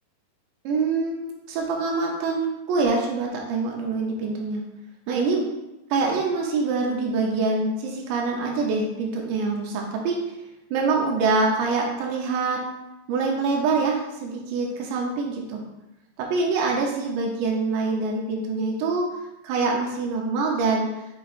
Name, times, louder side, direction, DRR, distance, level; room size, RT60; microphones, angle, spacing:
voice 1, 0.6-4.6 5.1-5.4 5.9-10.2 10.7-12.6 13.1-15.6 16.2-19.0 19.4-20.9, right 4 dB, 80° right, 0 dB, 3.0 m, -25 dB
6.9 x 6.0 x 2.5 m, 0.94 s
omnidirectional pair, 5.0 m